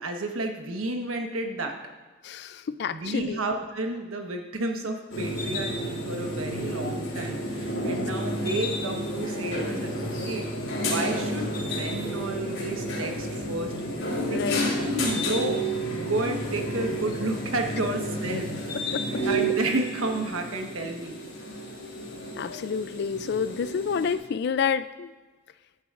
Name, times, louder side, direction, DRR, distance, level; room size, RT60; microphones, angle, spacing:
voice 1, 0.0-1.8 2.9-10.5 10.8-13.7 14.3-14.4 14.8-19.0 19.2-21.2, right 2 dB, 85° right, 3 dB, 1.2 m, -31 dB
voice 2, 2.2-3.4 7.8-8.0 14.3-14.8 18.9-19.2 22.3-25.1, left 6 dB, 50° left, 14 dB, 0.3 m, -29 dB
sound 1, 5.1-24.1, equal, 70° left, 3.0 m, -31 dB
13.5 x 10.0 x 2.5 m, 1.3 s
head